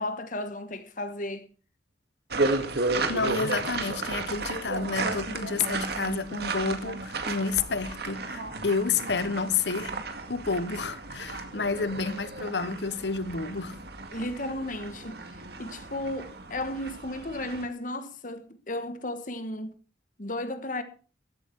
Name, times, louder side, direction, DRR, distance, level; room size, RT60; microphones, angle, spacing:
voice 1, 0.0-1.5 14.1-19.7 20.2-20.8, left 1 dB, 45° left, 1.4 m, -34 dB
sound 1, 2.3-17.7, right 3 dB, 65° right, 2.0 m, -33 dB
voice 2, 3.1-10.0 10.3-13.8, left 4 dB, 75° left, 1.2 m, -30 dB
14.5 x 12.0 x 4.7 m
head